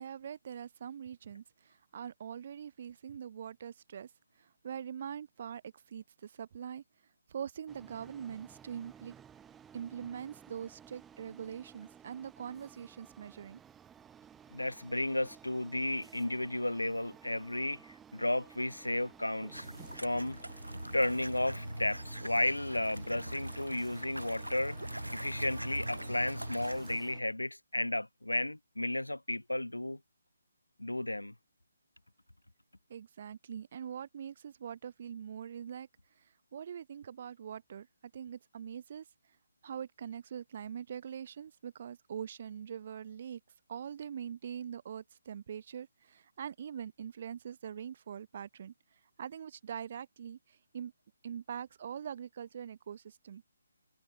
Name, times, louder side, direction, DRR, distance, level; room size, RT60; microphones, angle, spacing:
voice 1, 0.0-4.1 4.4-6.8 7.3-9.1 9.7-13.6 32.9-35.9 36.2-37.9 38.1-39.1 39.6-43.4 43.7-50.9 51.2-53.4, right 8 dB, 40° right, 0.7 m, -43 dB
sound 1, 7.7-27.2, right 8 dB, 10° right, 0.9 m, -56 dB
voice 2, 14.5-19.7 20.0-20.4 20.9-24.8 25.1-30.0 30.8-31.3, left 1 dB, 80° left, 1.3 m, -33 dB
sound 2, 19.5-27.0, right 1 dB, 85° right, 0.5 m, -41 dB
figure-of-eight pair, 145°, 0 cm